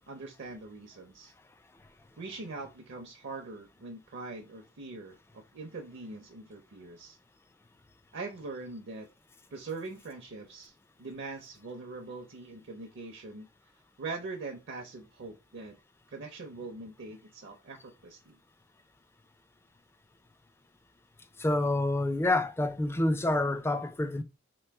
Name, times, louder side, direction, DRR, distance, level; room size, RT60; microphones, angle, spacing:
voice 1, 0.1-1.3 2.2-7.2 8.1-9.1 9.5-13.5 14.0-15.8 16.1-18.4, right 3 dB, 60° right, 0.6 m, -42 dB
voice 2, 21.4-24.2, left 2 dB, 10° left, 0.3 m, -27 dB
3.0 x 3.0 x 3.4 m
head